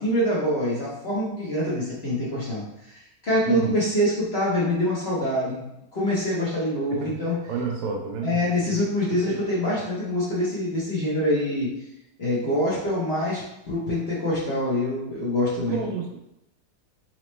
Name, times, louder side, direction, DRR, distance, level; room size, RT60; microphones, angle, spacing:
voice 1, 0.0-5.6 5.9-7.3 8.2-11.7 12.2-15.8, left 1 dB, 50° left, -7 dB, 0.7 m, -25 dB
voice 2, 7.5-8.4 8.6-8.8 9.1-9.4 15.6-16.2, right 5 dB, 90° right, 1 dB, 1.5 m, -30 dB
4.1 x 2.9 x 3.1 m, 0.85 s
omnidirectional pair, 2.4 m